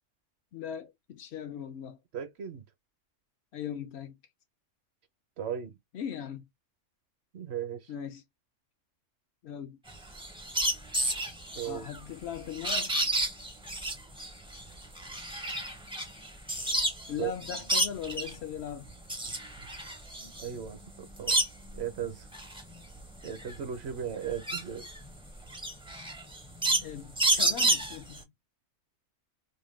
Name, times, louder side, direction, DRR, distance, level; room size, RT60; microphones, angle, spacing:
voice 1, 0.5-2.0 3.5-4.1 5.9-6.4 7.9-8.2 9.4-9.8 11.7-12.9 17.1-18.9 26.8-28.3, left 8 dB, 65° left, 0.8 m, -39 dB
voice 2, 2.1-2.6 5.4-5.8 7.3-7.9 11.5-11.9 17.2-17.7 19.2-19.3 19.6-19.7 20.2-21.4 21.7-22.3 23.2-24.9, right 8 dB, 65° right, 0.9 m, -37 dB
sound 1, 9.9-17.1 17.4-18.4 18.8-21.8 22.2-28.2, right 1 dB, 5° right, 0.4 m, -30 dB
2.7 x 2.1 x 3.1 m
omnidirectional pair, 1.3 m